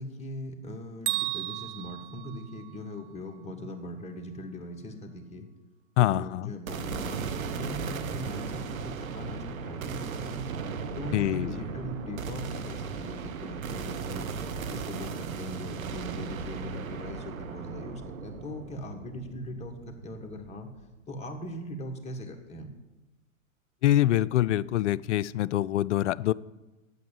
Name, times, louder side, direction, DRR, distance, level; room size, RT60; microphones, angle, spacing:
voice 1, 0.0-5.5 6.0-10.5 10.9-14.3 14.6-20.7 21.1-22.7, left 1 dB, 15° left, 3 dB, 1.6 m, -40 dB
Bell, 1.1-3.1, right 15 dB, 35° right, 0.8 m, -34 dB
voice 2, 6.0-6.5 11.1-11.7 23.8-26.3, left 13 dB, 60° left, 18 dB, 0.5 m, -25 dB
sound 1, 6.7-21.0, right 5 dB, 75° right, 1.1 m, -36 dB
8.5 x 8.0 x 8.9 m, 1.1 s
hypercardioid pair, 110°, 41 cm